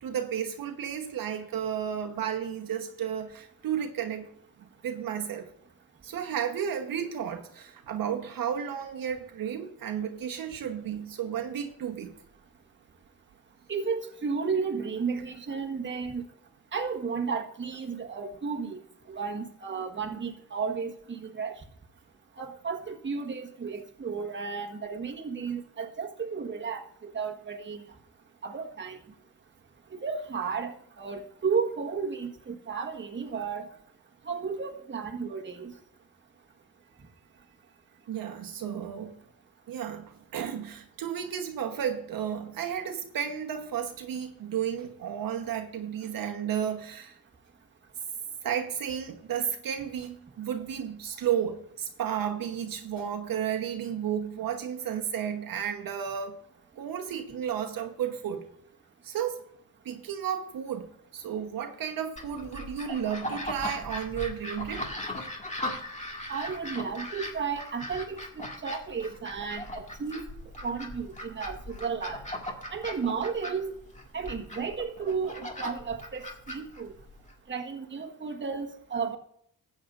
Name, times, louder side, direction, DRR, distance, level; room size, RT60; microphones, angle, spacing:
voice 1, 0.0-4.3 4.8-5.5 6.0-12.1 38.1-39.1 39.7-47.2 48.4-56.4 56.8-58.5 59.0-59.4 59.8-60.9 61.1-64.9, right 8 dB, 65° right, 1.1 m, -33 dB
voice 2, 13.7-16.2 16.7-18.8 19.1-21.5 22.4-27.8 28.4-29.0 30.0-33.7 34.2-35.7 66.3-70.3 70.6-72.2 72.7-73.7 74.1-76.9 77.5-79.2, right 5 dB, 30° right, 1.5 m, -33 dB
Waddling of Ducks, 62.2-77.3, left 1 dB, 20° left, 2.1 m, -39 dB
14.0 x 8.7 x 2.6 m
cardioid pair, 90°, 37 cm